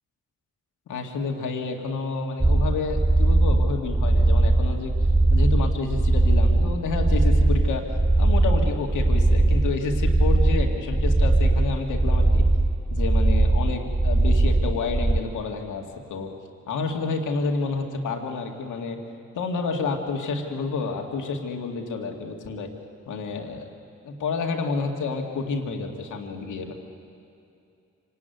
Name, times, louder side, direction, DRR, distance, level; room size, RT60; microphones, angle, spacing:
voice 1, 0.9-4.9 5.3-12.5 12.9-16.3 16.7-19.0 19.3-22.7 23.1-23.7 24.0-26.7, left 4 dB, 85° left, 3 dB, 2.1 m, -29 dB
sound 1, 2.4-15.2, right 2 dB, 10° right, 0.7 m, -20 dB
25.5 x 18.5 x 9.3 m, 2.6 s
supercardioid pair, 45°, 30 cm